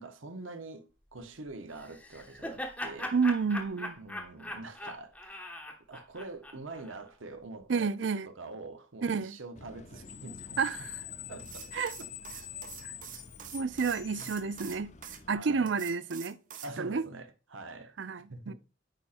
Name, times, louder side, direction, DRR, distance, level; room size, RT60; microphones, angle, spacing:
voice 1, 0.0-3.1 4.0-5.5 5.9-7.9 8.3-10.6 11.3-11.7 12.0-12.1 14.2-14.3 15.3-15.7 16.6-18.5, right 2 dB, 90° right, 1.0 m, -45 dB
Laughter, 1.8-7.0, left 1 dB, 5° left, 0.9 m, -41 dB
voice 2, 3.1-4.0 7.7-8.3 9.0-9.4 10.6-11.0 11.7-12.0 12.8-12.9 13.5-14.9 15.3-16.4 16.8-17.0 18.0-18.5, right 5 dB, 70° right, 0.5 m, -30 dB
Screech, 9.6-15.4, left 9 dB, 35° left, 0.6 m, -46 dB
sound 1, 11.4-15.2 15.7-16.7, right 9 dB, 40° right, 0.8 m, -46 dB
9.0 x 4.3 x 2.5 m
head